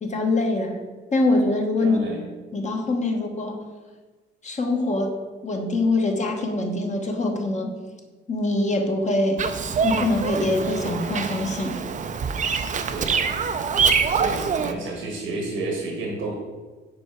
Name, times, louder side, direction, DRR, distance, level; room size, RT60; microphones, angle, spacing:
voice 1, 0.0-0.8 1.1-2.0 2.5-3.6 4.4-5.2 5.4-7.7 8.3-9.4 9.8-11.8, left 2 dB, 35° left, 2 dB, 1.0 m, -24 dB
voice 2, 1.8-2.2 12.9-13.2 14.1-16.4, right 3 dB, 80° right, -1 dB, 1.4 m, -30 dB
Bird vocalization bird call bird song, 9.4-14.7, right 5 dB, 40° right, 0.5 m, -25 dB
5.3 x 4.5 x 4.5 m, 1.3 s
cardioid pair, 90°, 20 cm